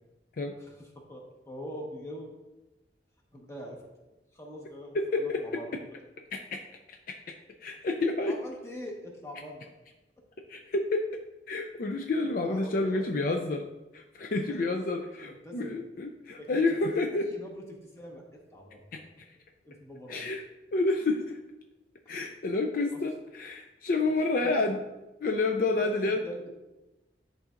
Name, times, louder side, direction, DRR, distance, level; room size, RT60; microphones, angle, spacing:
voice 1, 0.4-2.3 3.3-3.8 4.3-6.0 8.2-9.7 12.4-13.0 14.5-14.8 15.2-15.8 16.4-16.6 17.1-19.0 19.6-20.2 24.4-24.8 25.8-26.5, equal, 15° left, -1 dB, 1.2 m, -44 dB
voice 2, 4.9-5.4 6.3-6.6 6.9-7.3 7.6-8.4 10.5-11.1 11.5-13.7 13.9-17.3 18.9-19.0 20.1-20.4 20.7-21.4 22.1-24.8 25.2-26.3, left 2 dB, 50° left, 3 dB, 0.4 m, -29 dB
10.5 x 4.0 x 2.5 m, 1.0 s
head